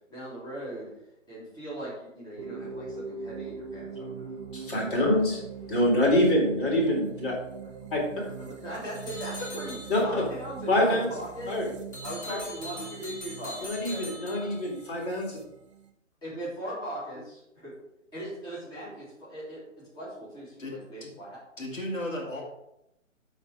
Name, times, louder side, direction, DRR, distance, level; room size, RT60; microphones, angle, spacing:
voice 1, 0.1-0.9 1.3-4.5 7.8-11.5 12.0-14.5 16.2-17.7 18.1-19.6 19.9-21.4, right 1 dB, 10° left, -8 dB, 3.0 m, -39 dB
sound 1, 2.4-15.9, right 6 dB, 25° right, 0.7 m, -42 dB
voice 2, 4.5-5.4 5.7-7.3 7.9-8.0 9.9-10.0 10.7-11.1 11.5-11.7 12.3-12.4 13.6-15.4, left 1 dB, 40° left, -3 dB, 3.9 m, -25 dB
sound 2, 8.9-10.3 11.9-14.9, left 2 dB, 60° left, 3.1 m, -42 dB
voice 3, 20.6-21.1 21.6-22.4, left 1 dB, 75° left, -1 dB, 2.5 m, -35 dB
13.0 x 4.4 x 4.9 m, 0.84 s
figure-of-eight pair, 135°, 39 cm